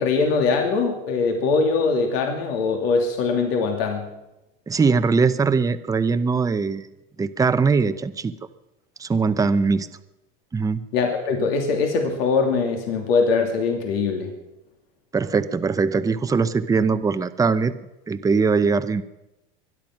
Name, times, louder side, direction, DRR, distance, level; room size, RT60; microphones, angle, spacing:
voice 1, 0.0-4.1 10.9-14.3, left 4 dB, 80° left, 3 dB, 2.7 m, -22 dB
voice 2, 4.7-6.9 7.2-8.3 9.0-9.9 10.5-10.8 15.1-17.7 18.1-19.0, right 4 dB, 10° right, 11 dB, 0.7 m, -21 dB
23.0 x 10.5 x 5.9 m, 0.96 s
supercardioid pair, 125°, 29 cm